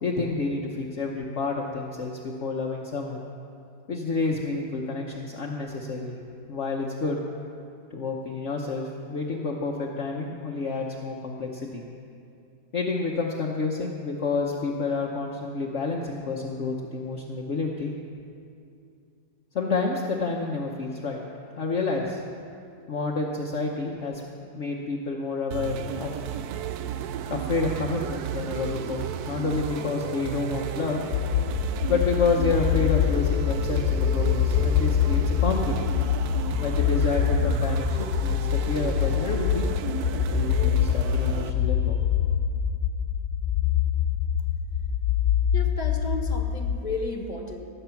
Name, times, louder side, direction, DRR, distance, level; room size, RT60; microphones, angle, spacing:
voice 1, 0.0-3.2 3.9-6.2 6.5-7.2 7.9-11.8 12.7-17.9 19.5-21.2 21.5-22.2 22.9-24.2 24.5-26.1 27.3-31.0 31.9-35.8 36.6-39.7 40.3-42.0, left 3 dB, 50° left, -1 dB, 1.2 m, -29 dB
sound 1, 25.5-41.5, right 9 dB, 75° right, 1.1 m, -33 dB
sound 2, 31.1-47.1, left 9 dB, 70° left, 0.7 m, -25 dB
voice 2, 45.5-47.6, left 2 dB, 25° left, 3 dB, 1.5 m, -33 dB
19.0 x 7.9 x 5.8 m, 2.5 s
omnidirectional pair, 1.7 m